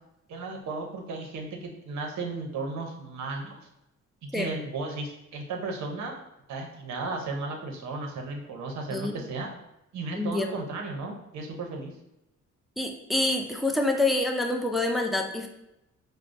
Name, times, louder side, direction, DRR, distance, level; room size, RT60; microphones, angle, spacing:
voice 1, 0.3-3.6 4.2-6.2 6.5-9.5 9.9-11.9, right 3 dB, 65° right, 2 dB, 0.8 m, -35 dB
voice 2, 8.9-9.3 10.2-10.6 12.8-15.5, left 2 dB, ahead, 2 dB, 0.4 m, -27 dB
4.7 x 2.0 x 2.5 m, 0.88 s
cardioid pair, 90°, 30 cm